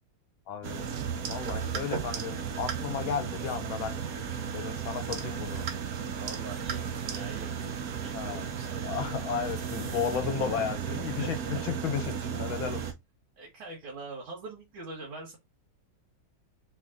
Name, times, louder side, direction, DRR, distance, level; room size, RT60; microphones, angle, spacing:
voice 1, 0.5-0.9 1.3-4.0 4.5-5.6 8.1-8.5 8.8-12.8, left 8 dB, 80° left, 1.7 m, -34 dB
sound 1, 0.6-12.9, right 7 dB, 60° right, 1.1 m, -34 dB
voice 2, 6.2-9.2 11.2-11.6 13.4-15.4, right 3 dB, 75° right, 2.4 m, -44 dB
4.2 x 3.1 x 3.8 m
omnidirectional pair, 2.2 m